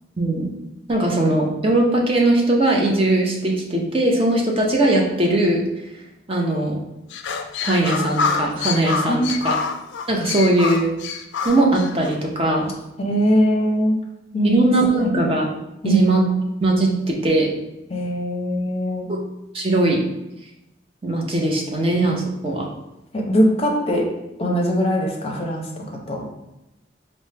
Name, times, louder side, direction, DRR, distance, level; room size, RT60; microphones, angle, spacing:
voice 1, 0.2-0.5 0.9-5.6 6.3-6.8 7.6-9.5 10.1-10.9 11.4-12.7 14.4-15.5 15.8-16.2 16.6-17.5 19.5-20.0 21.0-22.7, right 2 dB, 30° right, -1 dB, 0.6 m, -19 dB
sound 1, 7.1-12.2, left 5 dB, 75° left, 0.3 m, -26 dB
voice 2, 9.1-9.4 13.0-14.0 14.3-14.6 15.8-16.0 17.9-19.1 23.1-24.1 24.4-26.2, equal, 30° left, 1 dB, 0.6 m, -21 dB
4.3 x 2.1 x 3.3 m, 0.92 s
head